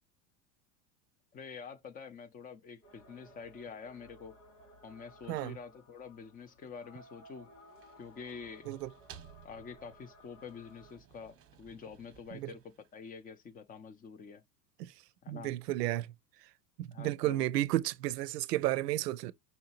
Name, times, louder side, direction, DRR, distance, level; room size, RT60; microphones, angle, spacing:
voice 1, 1.3-4.4 4.8-7.5 8.0-8.7 9.4-12.6 12.9-14.4 15.2-15.5 16.9-17.4, left 6 dB, 20° left, 0.5 m, -47 dB
sound 1, 2.8-11.0, equal, 80° left, 2.5 m, -58 dB
sound 2, 7.4-13.4, right 9 dB, 30° right, 0.9 m, -58 dB
voice 2, 15.3-16.1 16.8-19.3, right 15 dB, 85° right, 0.6 m, -32 dB
5.6 x 2.8 x 2.8 m
hypercardioid pair, 115°, 47 cm